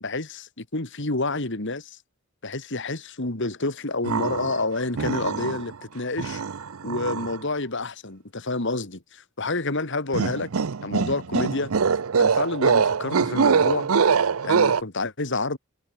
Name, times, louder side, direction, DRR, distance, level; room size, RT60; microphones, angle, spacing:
voice 1, 0.0-2.0 2.4-6.4 6.8-10.5 10.8-11.7 12.2-13.9 14.4-15.6, left 2 dB, 60° left, 2.4 m, -29 dB
sound 1, 4.0-4.6 4.9-5.8 6.2-7.4 10.1-14.8, right 5 dB, 80° right, 0.6 m, -23 dB
head